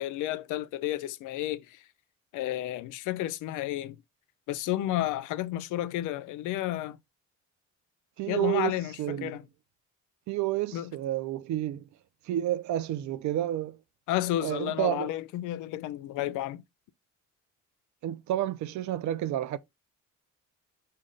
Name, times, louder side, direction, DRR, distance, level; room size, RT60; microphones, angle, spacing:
voice 1, 0.0-1.8 2.3-4.0 4.5-7.0 8.3-9.4 10.7-10.9 14.1-16.6, left 14 dB, 90° left, 0.4 m, -31 dB
voice 2, 8.2-9.3 10.3-11.8 12.3-13.8 14.4-15.1 18.0-19.6, right 13 dB, 70° right, 0.5 m, -30 dB
5.1 x 2.2 x 3.7 m
cardioid pair, 90°, 30 cm